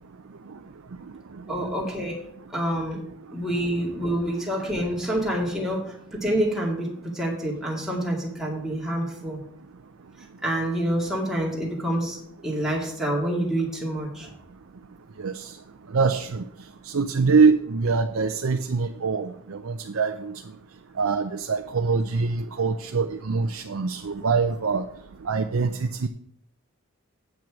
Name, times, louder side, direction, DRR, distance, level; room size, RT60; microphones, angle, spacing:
voice 1, 1.5-2.2 2.5-3.0 3.3-9.4 10.4-12.2 12.4-14.3, right 1 dB, ahead, -4 dB, 2.2 m, -27 dB
voice 2, 15.9-16.4 16.9-20.3 21.0-24.8 25.3-26.1, right 4 dB, 75° right, 6 dB, 0.5 m, -24 dB
8.4 x 6.2 x 6.0 m, 0.70 s
head